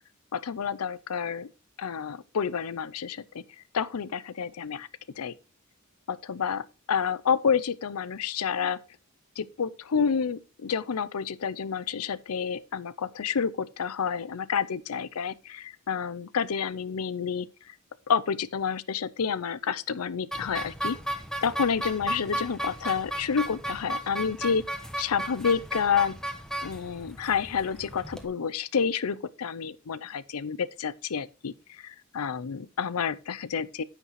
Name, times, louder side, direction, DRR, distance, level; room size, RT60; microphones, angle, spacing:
voice 1, 0.3-1.5 1.8-3.4 3.7-4.9 5.2-5.3 6.1-8.8 9.4-17.8 18.1-21.0 21.4-24.6 25.0-26.1 26.6-33.8, left 6 dB, 90° left, 0.5 m, -29 dB
sound 1, 20.3-28.2, right 1 dB, 5° left, 1.0 m, -35 dB
9.7 x 8.2 x 3.1 m
head